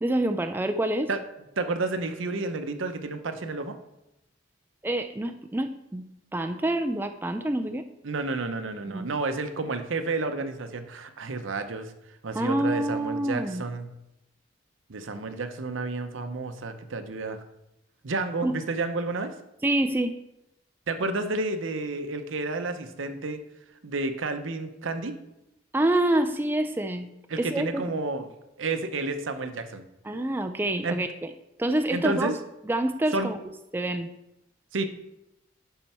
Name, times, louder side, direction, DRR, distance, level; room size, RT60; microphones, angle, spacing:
voice 1, 0.0-1.1 4.8-6.1 6.3-7.9 8.9-9.1 12.3-13.6 18.4-18.6 19.6-20.1 25.7-27.1 27.4-27.8 30.0-31.3 31.6-32.4 32.7-33.4 33.7-34.1, right 1 dB, 10° right, 7 dB, 0.3 m, -27 dB
voice 2, 1.6-3.8 8.0-11.9 12.2-13.9 14.9-17.4 18.0-19.3 20.9-23.4 23.8-25.1 27.3-28.3 28.6-29.8 30.8-31.0 31.9-32.3 33.1-33.3 34.7-34.8, right 3 dB, 80° right, 8 dB, 0.8 m, -30 dB
11.5 x 4.5 x 4.3 m, 0.88 s
head